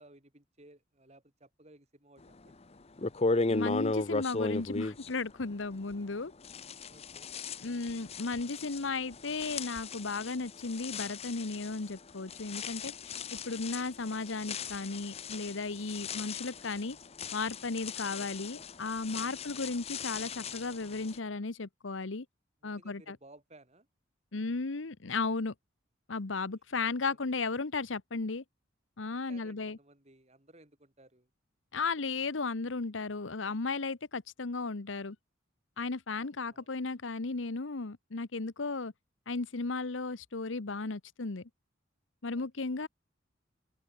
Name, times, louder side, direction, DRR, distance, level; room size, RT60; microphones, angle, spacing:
voice 1, 0.0-2.6 6.9-7.3 19.5-19.7 22.6-23.9 26.8-27.2 29.1-31.3 36.5-36.7 42.3-42.8, right 1 dB, 35° right, 4.0 m, -59 dB
sound 1, 2.5-2.6 3.0-6.1 6.4-21.2, left 3 dB, 35° left, 0.8 m, -37 dB
voice 2, 3.5-6.3 7.6-13.1 13.5-17.0 17.3-22.3 22.6-23.2 24.3-25.5 26.1-28.4 29.0-29.8 31.7-35.2 35.8-38.9 39.3-41.5 42.2-42.9, left 3 dB, 85° left, 1.0 m, -35 dB
open air
head